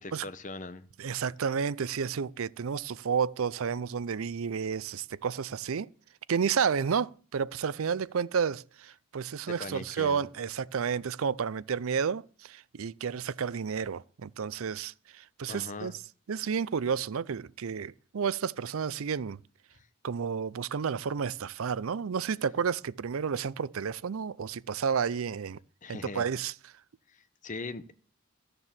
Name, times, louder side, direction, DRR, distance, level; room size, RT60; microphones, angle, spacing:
voice 1, 0.0-0.9 9.5-10.3 15.4-16.0 19.7-19.9 25.8-26.3 27.1-27.9, left 3 dB, 35° left, 0.8 m, -40 dB
voice 2, 1.0-5.9 6.3-15.9 16.3-19.4 20.0-25.6 25.9-26.5, right 6 dB, 70° right, 0.5 m, -31 dB
13.5 x 6.8 x 7.4 m
head